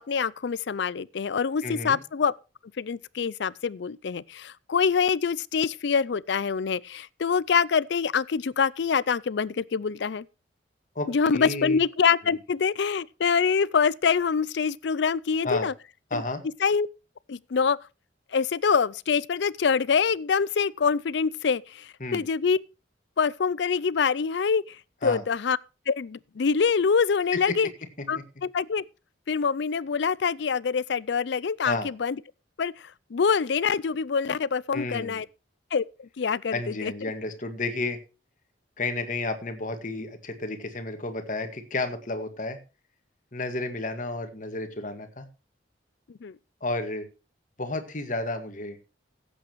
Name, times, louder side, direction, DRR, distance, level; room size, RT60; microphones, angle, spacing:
voice 1, 0.0-2.3 2.8-10.3 11.1-15.7 16.1-16.2 16.6-16.9 17.3-17.8 18.3-22.6 23.2-24.8 25.0-25.6 25.9-27.7 28.1-28.8 29.3-32.2 32.6-35.3 35.7-36.9 46.2-46.4, left 6 dB, 70° left, 0.4 m, -25 dB
voice 2, 1.6-2.0 11.0-11.8 15.4-15.7 16.1-16.4 22.0-22.2 25.0-25.2 31.6-31.9 34.7-35.2 36.5-38.0 38.8-42.6 43.3-45.3 46.6-47.1 47.6-48.8, left 2 dB, 45° left, 1.8 m, -31 dB
16.5 x 8.6 x 3.1 m
head